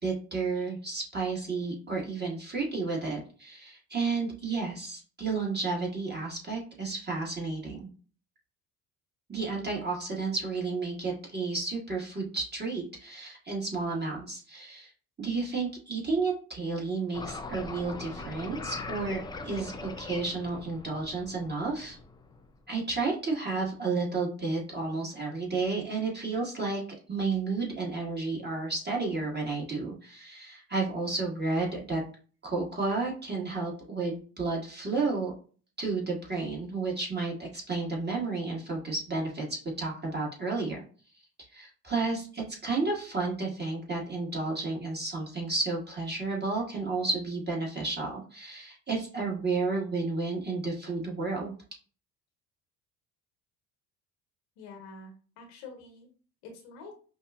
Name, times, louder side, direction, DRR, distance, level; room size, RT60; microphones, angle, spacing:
voice 1, 0.0-7.9 9.3-14.9 15.2-22.0 22.7-26.8 27.1-32.0 32.4-35.3 35.8-40.8 41.5-51.5, right 3 dB, 20° right, -2 dB, 1.7 m, -32 dB
sound 1, 17.1-22.5, left 3 dB, 10° left, 0.3 m, -41 dB
voice 2, 54.6-56.1 56.4-56.9, left 4 dB, 70° left, 3 dB, 1.2 m, -47 dB
5.4 x 2.3 x 2.4 m, 0.40 s
hypercardioid pair, 55°, 46 cm